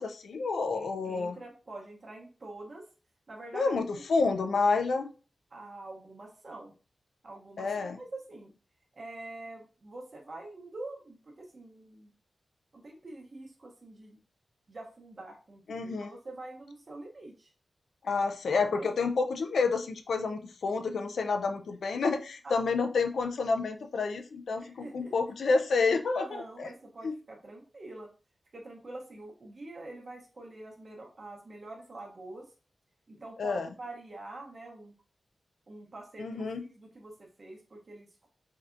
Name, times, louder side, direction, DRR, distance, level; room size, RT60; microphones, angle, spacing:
voice 1, 0.0-1.4 3.5-5.1 7.6-8.0 15.7-16.1 18.0-26.7 27.0-27.1 33.4-33.7 36.2-36.6, left 4 dB, 90° left, 6 dB, 0.3 m, -29 dB
voice 2, 0.7-2.8 3.3-4.0 5.5-6.7 7.2-8.5 8.9-12.1 12.7-14.2 14.7-17.5 18.8-18.9 22.4-22.6 24.6-25.1 26.2-28.1 28.5-32.5 33.1-34.9 35.7-38.3, right 2 dB, 45° right, -1 dB, 0.7 m, -46 dB
3.2 x 2.7 x 2.4 m, 0.36 s
wide cardioid pair, 115°, 0 cm